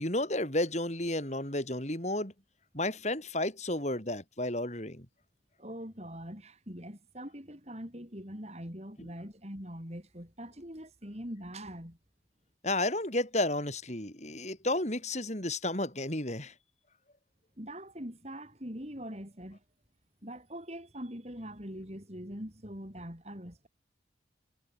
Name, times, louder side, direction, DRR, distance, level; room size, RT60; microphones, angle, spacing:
voice 1, 0.0-2.3 2.7-5.1 12.6-16.5, left 1 dB, 40° left, 5.9 m, -32 dB
voice 2, 5.6-12.0 17.6-19.6 20.2-23.7, equal, 35° right, 7.8 m, -43 dB
head